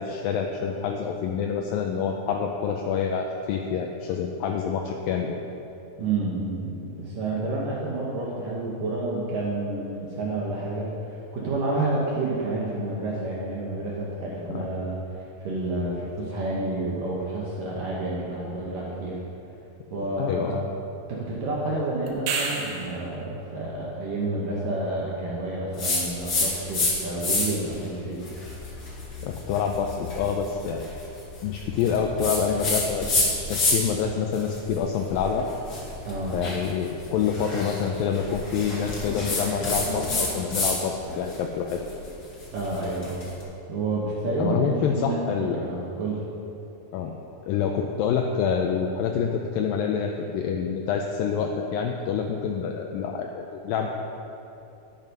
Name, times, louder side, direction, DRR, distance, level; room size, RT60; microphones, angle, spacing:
voice 1, 0.0-5.4 14.5-14.7 20.2-20.6 27.2-27.3 29.2-30.9 31.4-35.5 36.3-41.8 44.4-45.6 46.9-47.1 47.5-54.0, left 7 dB, 80° left, 2 dB, 2.2 m, -27 dB
voice 2, 6.0-15.0 15.4-19.2 19.9-20.5 21.1-28.2 36.0-36.4 42.5-43.2 43.7-45.2 45.5-46.2, right 2 dB, 65° right, -5 dB, 2.7 m, -29 dB
sound 1, 22.1-23.0 27.7-27.8, right 4 dB, 85° right, 3.1 m, -29 dB
sound 2, 25.8-26.9 27.2-27.7 28.2-34.0 34.3-40.8 41.1-43.3, left 2 dB, 35° left, 1.9 m, -29 dB
11.0 x 9.1 x 5.4 m, 2.8 s
omnidirectional pair, 4.6 m